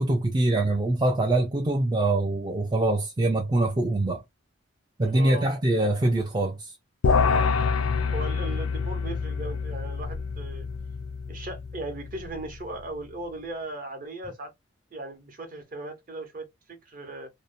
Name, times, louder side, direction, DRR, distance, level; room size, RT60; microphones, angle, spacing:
voice 1, 0.0-4.2 5.0-6.8, right 2 dB, 20° right, 0.3 m, -24 dB
voice 2, 5.1-5.6 8.1-10.7 11.3-14.5 14.9-17.3, right 2 dB, 40° right, 0.7 m, -37 dB
sound 1, 7.0-12.5, left 5 dB, 90° left, 0.4 m, -27 dB
2.6 x 2.0 x 2.5 m
head